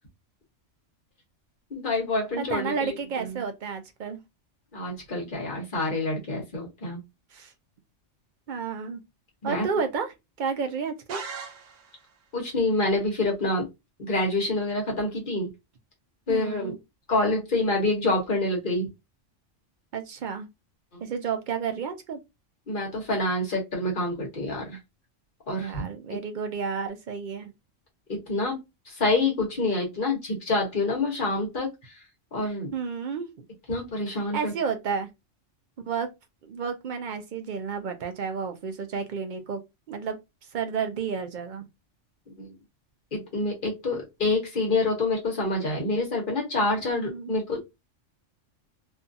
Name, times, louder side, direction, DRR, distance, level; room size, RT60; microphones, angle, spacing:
voice 1, 1.7-3.4 4.7-7.0 9.4-9.7 12.3-13.7 14.0-15.5 16.3-16.7 17.1-18.9 20.9-21.0 22.7-24.8 25.5-25.8 28.1-28.6 28.9-32.0 32.3-32.7 33.7-34.5 42.4-42.5 43.1-47.6, left 2 dB, 45° left, 1.2 m, -27 dB
voice 2, 2.4-4.2 7.3-7.5 8.5-9.0 9.4-11.2 16.3-16.8 19.9-20.5 21.0-22.2 25.6-27.5 32.7-33.5 34.3-35.1 35.9-36.1 36.4-39.6 39.9-40.2 40.5-41.7 46.9-47.3, right 6 dB, 60° right, 0.5 m, -31 dB
sound 1, 11.1-12.2, right 5 dB, 80° right, 1.0 m, -39 dB
2.7 x 2.4 x 2.6 m
omnidirectional pair, 1.3 m